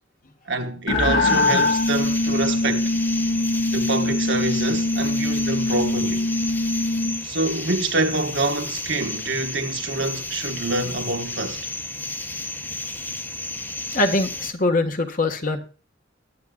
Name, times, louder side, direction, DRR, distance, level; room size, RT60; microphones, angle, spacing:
voice 1, 0.5-2.9 3.7-6.3 7.2-11.7, right 2 dB, 65° right, 1.3 m, -26 dB
sound 1, 0.9-7.2, left 2 dB, 90° left, 1.7 m, -22 dB
sound 2, 1.2-14.5, left 2 dB, 10° left, 0.9 m, -32 dB
voice 2, 13.9-15.6, left 2 dB, 45° left, 1.5 m, -22 dB
21.0 x 9.5 x 2.4 m
head